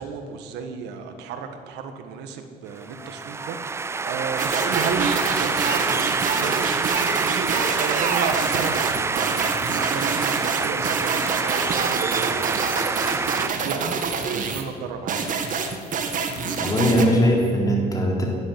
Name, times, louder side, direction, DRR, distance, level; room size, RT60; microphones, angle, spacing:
voice 1, 0.0-5.1 5.4-15.4, right 6 dB, 90° right, 7 dB, 1.5 m, -33 dB
sound 1, 2.8-13.5, right 4 dB, 15° right, 0.4 m, -26 dB
sound 2, 4.4-14.7 15.1-17.1, right 5 dB, 50° right, 1.7 m, -27 dB
voice 2, 16.6-18.2, equal, 20° left, -1 dB, 3.8 m, -20 dB
11.5 x 11.0 x 9.5 m, 2.3 s
cardioid pair, 110°, 17 cm